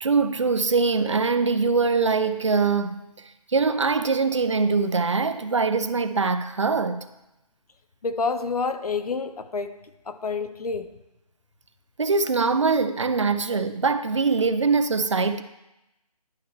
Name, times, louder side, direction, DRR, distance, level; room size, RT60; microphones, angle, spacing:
voice 1, 0.0-7.1 12.0-15.4, right 4 dB, 50° right, 0.4 m, -23 dB
voice 2, 8.0-9.8 10.1-10.9, left 4 dB, 70° left, 0.6 m, -28 dB
11.5 x 4.4 x 3.1 m
hypercardioid pair, 175°, 20 cm